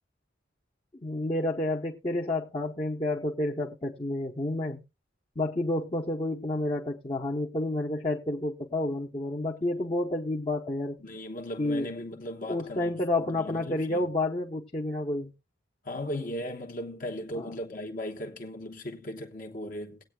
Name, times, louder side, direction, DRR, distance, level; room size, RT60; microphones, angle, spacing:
voice 1, 1.0-4.8 5.4-11.0 11.6-11.9 12.5-15.3 17.3-17.5, left 2 dB, 30° left, 0.9 m, -30 dB
voice 2, 11.0-12.9 13.2-14.0 15.8-20.0, left 1 dB, 45° left, 1.1 m, -37 dB
19.0 x 8.5 x 2.3 m
head